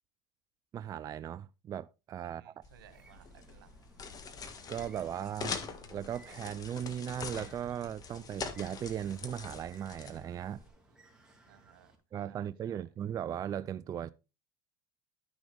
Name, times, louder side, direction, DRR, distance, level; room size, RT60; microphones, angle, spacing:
voice 1, 0.7-2.6 4.7-5.6 5.9-10.6 12.1-14.1, right 9 dB, 30° right, 0.4 m, -38 dB
voice 2, 2.2-3.7 11.5-11.9 12.3-12.8, right 12 dB, 80° right, 1.7 m, -60 dB
sound 1, 2.6-10.7, left 5 dB, 30° left, 1.7 m, -44 dB
Bird, 2.9-12.0, right 2 dB, 5° right, 3.0 m, -61 dB
12.0 x 6.2 x 3.5 m
hypercardioid pair, 95°, 12 cm